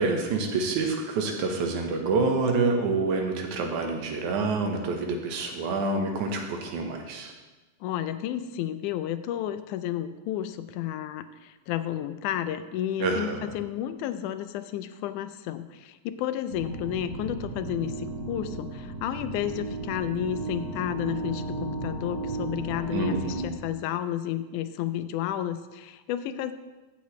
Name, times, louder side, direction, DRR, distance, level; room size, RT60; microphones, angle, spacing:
voice 1, 0.0-7.3 13.0-13.5 22.9-23.6, right 3 dB, 75° right, 3 dB, 2.5 m, -27 dB
voice 2, 7.8-26.5, left 11 dB, 85° left, 11 dB, 2.0 m, -32 dB
sound 1, 16.5-23.4, right 3 dB, 30° right, 3.1 m, -34 dB
14.5 x 7.0 x 3.1 m, 1.1 s
omnidirectional pair, 3.6 m